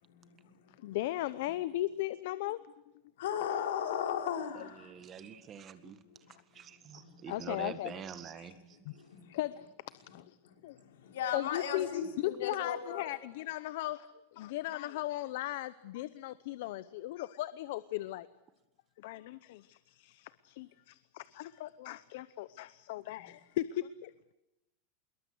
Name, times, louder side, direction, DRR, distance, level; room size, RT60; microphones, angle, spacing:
voice 1, 0.0-1.0 3.2-5.4 5.8-7.2 8.4-8.6 8.9-9.4 10.4-13.1 23.2-23.3, left 8 dB, 90° left, 5 dB, 5.1 m, -38 dB
voice 2, 0.8-2.6 7.3-8.0 8.8-8.9 9.3-9.6 10.1-10.4 10.6-10.8 11.3-11.9 12.2-18.3 19.0-24.1, left 15 dB, 60° left, 16 dB, 0.8 m, -37 dB
voice 3, 4.8-6.0 6.5-8.6, right 8 dB, 20° right, 11 dB, 1.7 m, -45 dB
25.5 x 22.0 x 8.0 m, 0.93 s
supercardioid pair, 170°, 0 cm